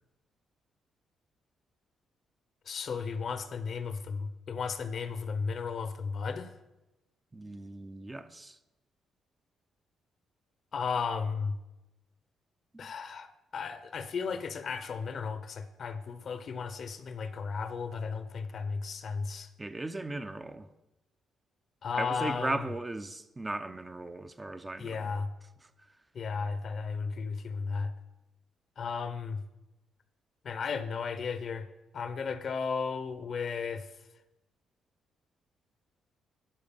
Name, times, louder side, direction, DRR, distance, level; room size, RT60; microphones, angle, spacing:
voice 1, 2.7-6.5 10.7-11.6 12.8-13.3 13.5-19.5 21.8-22.6 24.8-25.3 26.1-27.9 28.8-29.4 30.4-31.7 31.9-33.9, left 5 dB, 55° left, 0.7 m, -34 dB
voice 2, 7.3-8.6 19.6-20.7 22.0-25.1, right 2 dB, 20° right, 0.5 m, -37 dB
12.0 x 4.8 x 5.4 m
cardioid pair, 90°, 0 cm